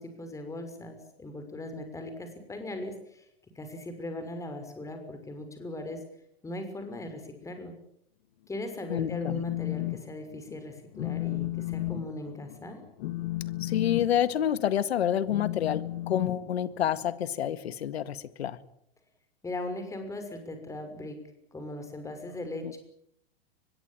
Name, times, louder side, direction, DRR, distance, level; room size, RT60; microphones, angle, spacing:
voice 1, 0.0-3.3 3.5-6.0 6.4-7.7 8.5-12.8 19.4-21.2 21.5-22.8, left 1 dB, 10° left, 7 dB, 6.1 m, -39 dB
Telephone, 8.8-10.0 10.3-10.6 10.9-17.1, left 16 dB, 55° left, 2.0 m, -34 dB
voice 2, 8.9-9.4 13.6-18.6 22.6-22.8, left 10 dB, 85° left, 14 dB, 1.9 m, -28 dB
24.0 x 22.0 x 9.0 m, 0.72 s
hypercardioid pair, 140°, 31 cm